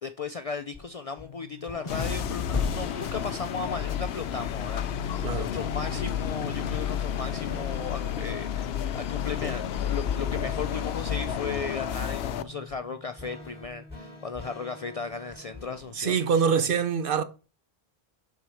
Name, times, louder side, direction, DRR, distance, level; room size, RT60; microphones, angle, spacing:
voice 1, 0.0-16.2, left 5 dB, 50° left, 0.4 m, -36 dB
sound 1, 0.7-16.0, left 3 dB, 10° left, 3.8 m, -46 dB
sound 2, 1.9-12.4, left 9 dB, 75° left, 0.8 m, -31 dB
sound 3, 1.9-4.1, left 5 dB, 30° left, 0.8 m, -33 dB
voice 2, 16.0-17.2, right 6 dB, 60° right, 0.9 m, -24 dB
6.4 x 4.2 x 6.2 m
omnidirectional pair, 1.1 m